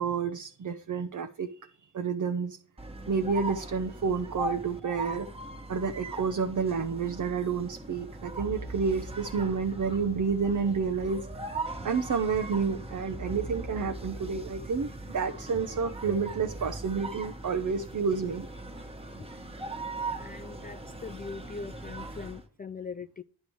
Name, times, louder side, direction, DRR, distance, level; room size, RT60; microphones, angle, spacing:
voice 1, 0.0-1.7 1.9-2.6 3.1-5.3 5.7-11.2 11.8-18.5, right 5 dB, 45° right, 0.8 m, -30 dB
sound 1, 2.8-22.5, right 2 dB, 15° right, 1.6 m, -40 dB
sound 2, 8.4-17.0, right 1 dB, 5° left, 1.8 m, -45 dB
voice 2, 20.2-23.2, left 5 dB, 25° left, 0.3 m, -41 dB
10.0 x 5.4 x 4.6 m
cardioid pair, 95°, 42 cm